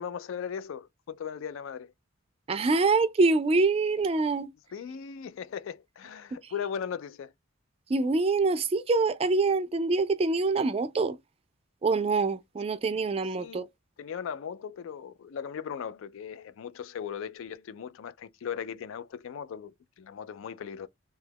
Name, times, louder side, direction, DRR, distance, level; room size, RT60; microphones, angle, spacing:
voice 1, 0.0-1.9 4.7-7.3 13.4-13.7 14.0-20.9, left 7 dB, 70° left, 0.3 m, -38 dB
voice 2, 2.5-4.5 7.9-11.2 11.8-13.6, right 3 dB, 30° right, 0.3 m, -25 dB
2.9 x 2.3 x 3.4 m
head